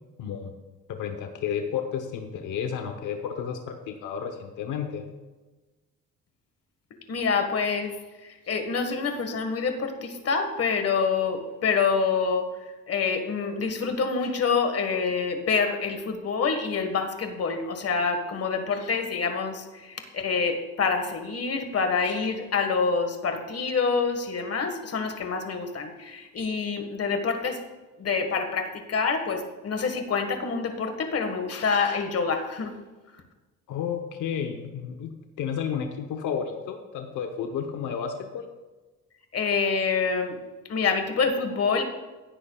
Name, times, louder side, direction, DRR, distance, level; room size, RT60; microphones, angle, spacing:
voice 1, 0.2-0.5 0.9-5.0 33.7-38.5, left 7 dB, 85° left, 5 dB, 1.0 m, -32 dB
voice 2, 7.1-7.9 8.2-12.5 12.9-27.6 28.0-32.7 39.3-40.4 40.7-41.8, left 5 dB, 50° left, 6 dB, 1.6 m, -26 dB
17.0 x 9.8 x 2.4 m, 1.2 s
cardioid pair, 90°, 30 cm